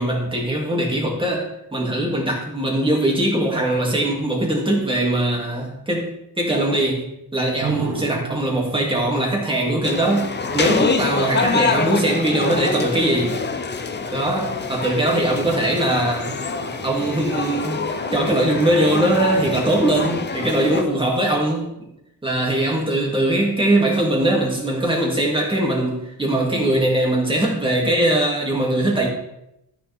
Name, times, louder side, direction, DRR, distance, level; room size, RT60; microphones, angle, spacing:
voice 1, 0.0-13.4 14.1-16.4 16.8-21.7 22.2-29.1, right 1 dB, 15° right, -2 dB, 2.7 m, -21 dB
sound 1, 7.5-21.4, right 3 dB, 75° right, 1.8 m, -37 dB
sound 2, 9.8-20.8, left 4 dB, 30° left, 0.7 m, -26 dB
14.0 x 6.8 x 3.6 m, 0.82 s
wide cardioid pair, 140°, 37 cm